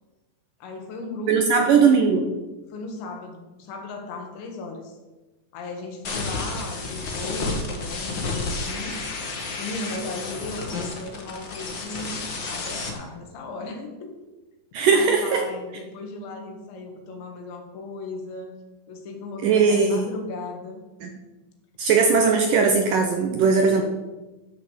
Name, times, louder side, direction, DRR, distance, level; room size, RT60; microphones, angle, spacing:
voice 1, 0.6-1.9 2.7-5.0 5.5-9.0 9.6-12.2 12.5-14.1 14.9-18.6 18.9-20.8 23.5-23.8, left 3 dB, 90° left, 3 dB, 4.1 m, -36 dB
voice 2, 1.3-2.2 14.7-15.4 19.4-20.1 21.0-21.1 21.8-23.8, right 5 dB, 70° right, 3 dB, 2.1 m, -19 dB
sound 1, 6.0-12.9, left 3 dB, 70° left, 1.1 m, -31 dB
12.5 x 6.6 x 7.4 m, 1.1 s
omnidirectional pair, 5.0 m